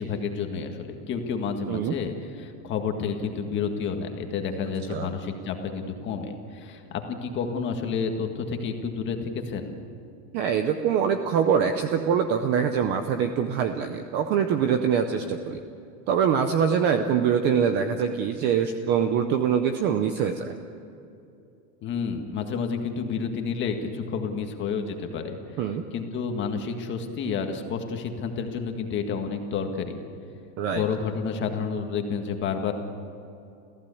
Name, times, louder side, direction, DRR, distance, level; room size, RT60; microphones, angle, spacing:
voice 1, 0.0-9.8 21.8-30.0 30.7-32.7, left 5 dB, 25° left, 4 dB, 1.8 m, -30 dB
voice 2, 10.3-15.6 16.1-20.5 25.6-25.8 30.6-30.8, right 7 dB, 20° right, 7 dB, 0.5 m, -24 dB
29.5 x 15.5 x 8.4 m, 2.7 s
supercardioid pair, 170°, 48 cm